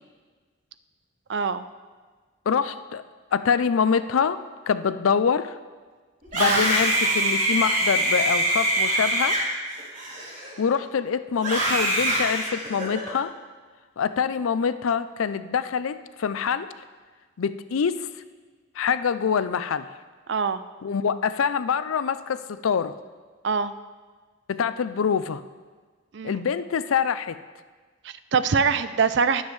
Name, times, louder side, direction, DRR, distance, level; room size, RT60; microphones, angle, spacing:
voice 1, 1.3-1.7 6.4-6.6 20.3-20.6 23.4-23.7 26.1-26.4 28.0-29.4, right 5 dB, 60° right, 13 dB, 0.4 m, -24 dB
voice 2, 2.5-3.0 3.3-4.4 4.7-5.6 6.3-9.4 10.6-13.3 14.0-16.7 17.4-18.1 18.8-19.9 20.8-22.9 24.5-25.4 26.2-27.4, left 6 dB, 90° left, 13 dB, 0.4 m, -25 dB
Screaming, 6.2-10.7 11.4-13.1, right 1 dB, 40° right, 2.7 m, -24 dB
19.5 x 7.2 x 3.2 m, 1.4 s
head